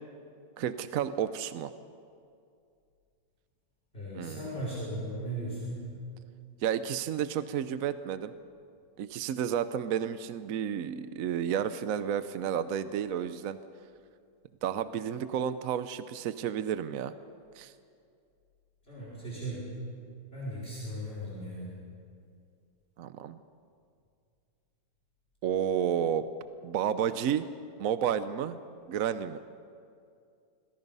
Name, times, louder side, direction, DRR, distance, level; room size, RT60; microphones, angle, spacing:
voice 1, 0.6-1.7 4.1-4.5 6.6-8.3 9.0-13.6 14.6-17.1 17.6-17.7 23.0-23.4 25.4-26.3 26.6-27.5 27.8-28.6 28.9-29.4, right 9 dB, 65° right, 12 dB, 1.0 m, -31 dB
voice 2, 3.9-5.8 18.9-19.7 20.3-21.7, right 1 dB, 35° left, -7 dB, 5.4 m, -37 dB
26.5 x 21.5 x 5.4 m, 2.4 s
omnidirectional pair, 1.7 m